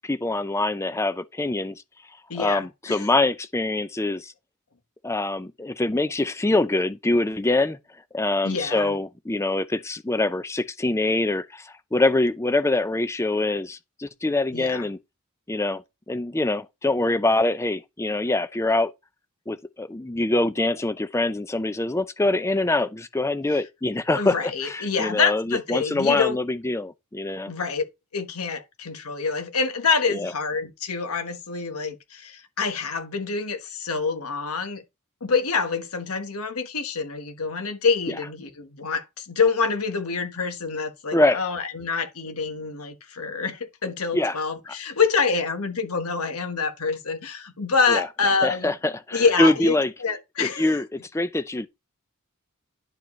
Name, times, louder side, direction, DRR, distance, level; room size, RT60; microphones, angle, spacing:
voice 1, 0.0-1.8 2.4-4.3 5.0-7.8 8.1-15.0 15.5-18.9 19.5-27.5 30.1-30.3 41.1-41.4 44.1-44.3 47.9-48.0 48.4-49.9 50.4-51.7, left 2 dB, 10° left, 0.5 m, -24 dB
voice 2, 2.3-3.1 8.4-9.0 14.5-14.9 23.5-23.6 24.2-26.4 27.5-27.8 28.1-34.8 35.2-48.7 49.1-49.8 50.0-50.8, left 5 dB, 75° left, 1.4 m, -26 dB
10.5 x 4.8 x 3.2 m
head